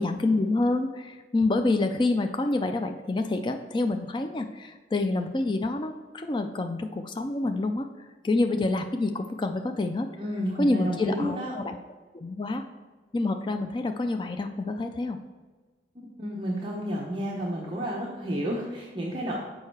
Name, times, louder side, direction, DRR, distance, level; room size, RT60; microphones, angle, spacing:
voice 1, 0.0-7.9 8.2-10.1 10.6-11.8 12.1-12.6 13.1-15.2, left 2 dB, 25° left, 6 dB, 0.3 m, -27 dB
voice 2, 10.2-11.5 15.9-19.4, equal, 25° right, -4 dB, 0.8 m, -31 dB
6.6 x 5.3 x 4.7 m, 1.3 s
head